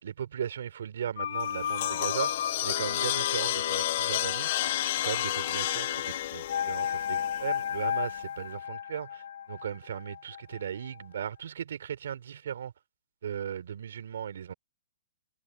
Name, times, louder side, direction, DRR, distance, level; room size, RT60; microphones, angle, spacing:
voice 1, 0.0-4.5 5.0-12.7 13.2-14.5, right 9 dB, 70° right, 3.3 m, -37 dB
sound 1, 1.2-10.9 11.2-11.3, left 9 dB, 70° left, 4.6 m, -34 dB
sound 2, 1.4-7.7, left 15 dB, 45° left, 1.1 m, -32 dB
hypercardioid pair, 145°, 0 cm